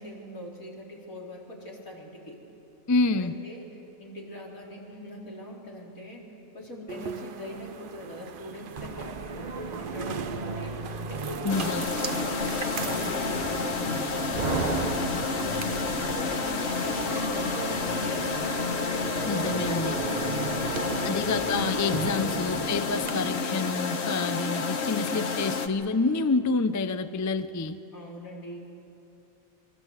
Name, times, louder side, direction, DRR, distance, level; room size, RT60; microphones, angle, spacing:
voice 1, 0.0-2.4 3.2-6.2 6.5-11.7 12.1-14.9 15.3-18.7 19.2-19.5 20.9-21.3 27.9-28.6, equal, 80° left, -3 dB, 4.5 m, -42 dB
voice 2, 2.9-3.3 11.4-11.9 19.2-20.0 21.0-27.8, left 3 dB, 25° left, 11 dB, 0.4 m, -28 dB
sound 1, 6.9-21.1, right 7 dB, 50° right, 0.7 m, -39 dB
sound 2, 8.8-23.1, right 3 dB, 35° right, 1.0 m, -36 dB
sound 3, 11.5-25.7, left 5 dB, 55° left, 1.3 m, -30 dB
26.0 x 21.5 x 8.2 m, 2.8 s
omnidirectional pair, 1.5 m